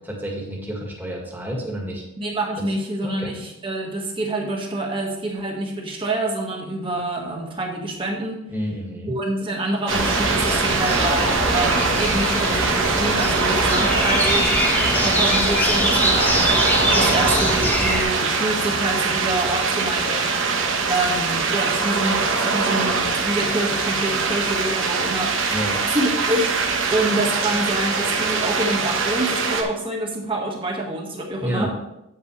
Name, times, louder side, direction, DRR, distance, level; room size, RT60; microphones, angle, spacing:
voice 1, 0.0-2.0 2.6-2.7 3.0-3.4 8.5-9.2 25.5-25.8 31.4-31.7, equal, 10° right, -2 dB, 1.8 m, -29 dB
voice 2, 2.2-8.4 9.1-14.5 15.0-20.3 20.9-25.3 25.9-26.6 26.9-31.7, right 1 dB, 25° right, 0 dB, 1.7 m, -26 dB
sound 1, 9.9-18.0, equal, 10° left, 1.2 m, -23 dB
sound 2, 9.9-29.6, right 4 dB, 60° right, 1.1 m, -23 dB
9.0 x 8.4 x 3.2 m, 0.86 s
head